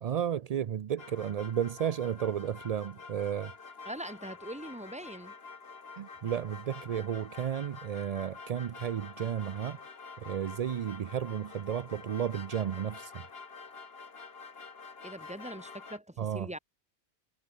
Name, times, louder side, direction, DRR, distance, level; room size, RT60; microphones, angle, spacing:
voice 1, 0.0-3.5 6.0-9.8 10.2-13.3 16.2-16.6, right 9 dB, 65° right, 0.3 m, -33 dB
sound 1, 1.0-16.0, left 4 dB, 55° left, 2.0 m, -48 dB
voice 2, 3.9-5.3 15.0-16.6, right 1 dB, 5° right, 1.9 m, -42 dB
omnidirectional pair, 1.2 m